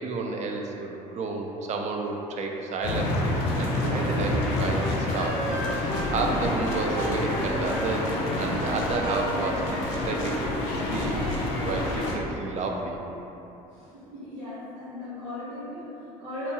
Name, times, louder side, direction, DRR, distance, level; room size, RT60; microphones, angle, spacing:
voice 1, 0.0-5.4 5.8-11.2 11.6-13.0, right 3 dB, 40° right, 1 dB, 0.4 m, -31 dB
sound 1, 2.8-12.2, left 1 dB, 75° left, 0.4 m, -28 dB
sound 2, 4.7-11.7, right 1 dB, 85° right, 1.1 m, -36 dB
sound 3, 6.0-11.5, left 1 dB, ahead, 0.8 m, -40 dB
voice 2, 13.7-16.5, left 1 dB, 60° right, -12 dB, 0.9 m, -38 dB
2.7 x 2.1 x 2.8 m, 2.9 s
hypercardioid pair, 60°, 18 cm